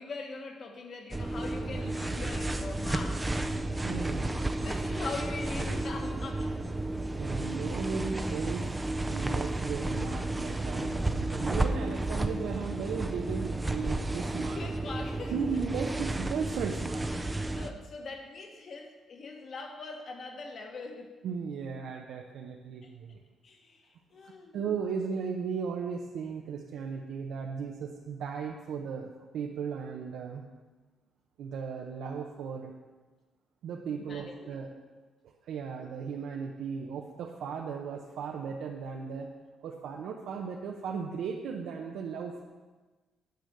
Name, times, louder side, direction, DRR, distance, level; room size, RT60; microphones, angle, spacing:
voice 1, 0.0-3.3 4.6-6.6 14.5-15.3 17.2-21.1 22.8-22.9 23.4-24.6 34.0-34.6, left 3 dB, 40° left, 3 dB, 1.3 m, -42 dB
sound 1, 1.1-17.7, right 2 dB, 10° right, 0.5 m, -32 dB
voice 2, 3.8-4.4 7.2-8.7 9.0-14.6 15.3-17.2 21.2-23.2 24.2-29.1 29.3-30.4 31.4-32.7 33.6-34.7 35.2-39.3 39.6-42.4, right 6 dB, 80° right, 1 dB, 0.8 m, -36 dB
9.2 x 5.1 x 7.8 m, 1.3 s
cardioid pair, 155°, 0 cm